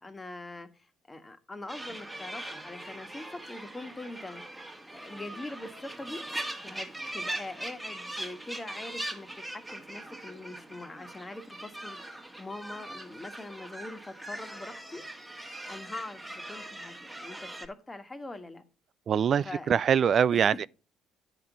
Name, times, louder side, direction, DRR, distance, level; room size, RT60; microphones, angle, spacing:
voice 1, 0.0-4.6 4.9-6.3 6.6-15.0 15.7-18.6 19.4-19.7 20.3-20.7, left 2 dB, 20° left, 1.5 m, -43 dB
sound 1, 1.7-17.7, right 1 dB, 5° right, 1.6 m, -41 dB
voice 2, 19.1-20.7, right 8 dB, 50° right, 0.3 m, -24 dB
10.0 x 3.8 x 6.1 m
hypercardioid pair, 60°, 0 cm